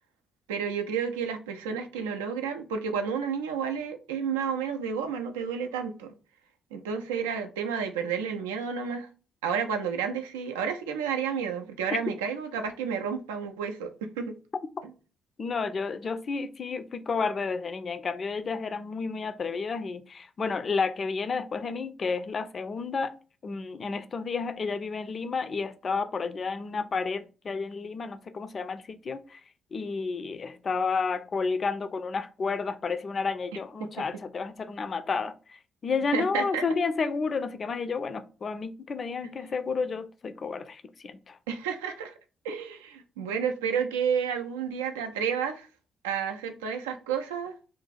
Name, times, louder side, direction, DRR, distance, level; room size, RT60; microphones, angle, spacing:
voice 1, 0.5-6.1 6.7-9.1 9.4-14.3 26.8-26.9 36.1-36.6 41.5-42.1 42.4-45.7 46.0-47.5, right 7 dB, 80° right, 0.3 m, -31 dB
voice 2, 15.4-23.1 23.4-29.4 29.7-41.4, left 4 dB, 45° left, 0.3 m, -31 dB
2.5 x 2.3 x 3.9 m
figure-of-eight pair, 40°, 0 cm